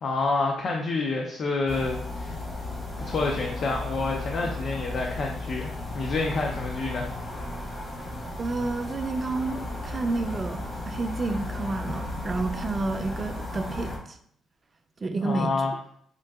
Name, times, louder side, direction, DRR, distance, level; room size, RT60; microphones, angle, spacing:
voice 1, 0.0-2.4 3.0-7.1 15.2-15.7, left 3 dB, 55° left, 1 dB, 0.4 m, -28 dB
sound 1, 1.7-14.0, left 2 dB, 30° left, 1.0 m, -35 dB
voice 2, 8.4-14.2 15.0-15.5, right 3 dB, 35° right, 7 dB, 0.4 m, -30 dB
3.7 x 2.4 x 2.2 m, 0.64 s
cardioid pair, 90°, 0 cm